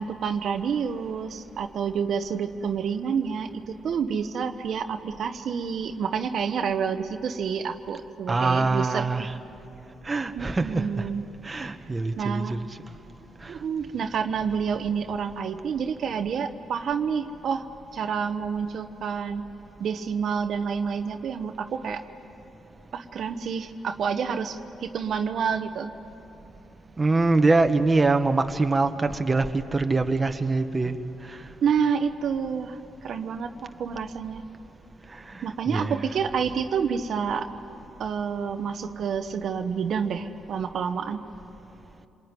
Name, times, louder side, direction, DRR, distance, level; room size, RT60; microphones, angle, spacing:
voice 1, 0.0-9.3 10.3-11.2 11.6-11.7 12.2-12.7 13.5-17.7 17.9-19.5 19.8-22.0 22.9-25.9 31.6-34.4 35.4-37.5 38.0-41.2, right 6 dB, 60° right, 7 dB, 1.0 m, -28 dB
voice 2, 8.3-9.3 10.0-11.1 11.4-12.6 13.4-13.5 27.0-31.0 31.3-31.4 35.3-36.1, right 3 dB, 20° right, 6 dB, 1.3 m, -24 dB
27.0 x 21.5 x 9.8 m, 3.0 s
cardioid pair, 90°, 0 cm